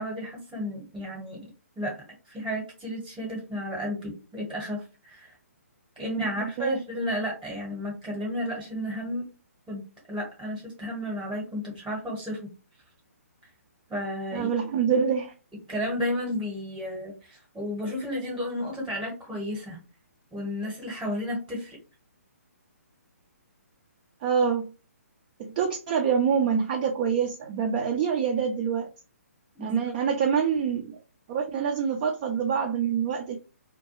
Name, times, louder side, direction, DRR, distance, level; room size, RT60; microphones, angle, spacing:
voice 1, 0.0-1.5 1.8-2.0 2.3-5.3 6.0-9.2 9.7-9.8 10.1-12.4 13.9-14.5 15.7-19.8 20.3-21.8 29.5-29.8, equal, 5° right, -3 dB, 0.8 m, -32 dB
voice 2, 6.2-6.8 14.3-15.3 24.2-24.7 25.4-28.9 29.6-31.0 31.3-33.4, right 7 dB, 30° right, 2 dB, 0.3 m, -26 dB
2.2 x 2.2 x 2.9 m, 0.33 s
figure-of-eight pair, 135°, 8 cm